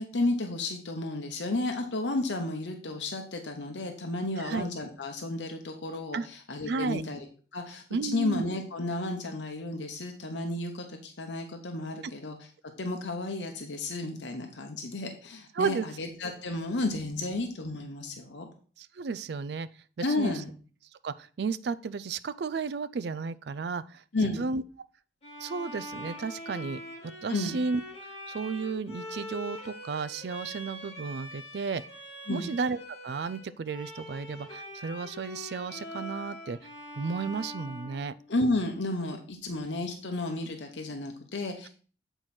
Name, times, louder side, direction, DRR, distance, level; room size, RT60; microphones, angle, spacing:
voice 1, 0.0-7.2 7.5-12.4 12.8-18.5 20.0-20.5 24.1-24.5 27.3-27.6 32.3-32.5 38.3-41.7, left 2 dB, 85° left, 4 dB, 0.9 m, -32 dB
voice 2, 4.4-4.7 6.1-6.3 6.7-7.0 7.9-8.4 12.0-12.1 15.6-15.9 18.8-19.7 20.0-20.4 21.0-24.6 25.4-27.8 28.3-31.8 32.3-36.6 37.0-38.2, right 4 dB, 65° right, 14 dB, 0.4 m, -33 dB
Bowed string instrument, 25.2-38.7, left 1 dB, 35° left, 2.2 m, -43 dB
7.9 x 4.5 x 4.2 m, 0.41 s
head